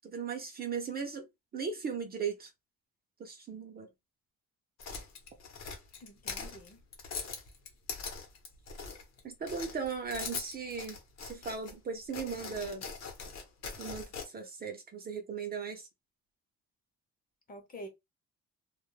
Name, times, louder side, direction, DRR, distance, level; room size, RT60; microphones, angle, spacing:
voice 1, 0.0-1.3 1.5-2.5 3.2-3.9 9.2-12.8 13.8-15.8, right 6 dB, 30° right, 0.5 m, -37 dB
sound 1, 4.8-9.2 9.5-11.7 12.1-14.2, left 5 dB, 60° left, 0.8 m, -41 dB
voice 2, 6.0-6.8 17.5-17.9, equal, 30° left, 0.7 m, -47 dB
2.3 x 2.0 x 3.1 m
cardioid pair, 160°, 30 cm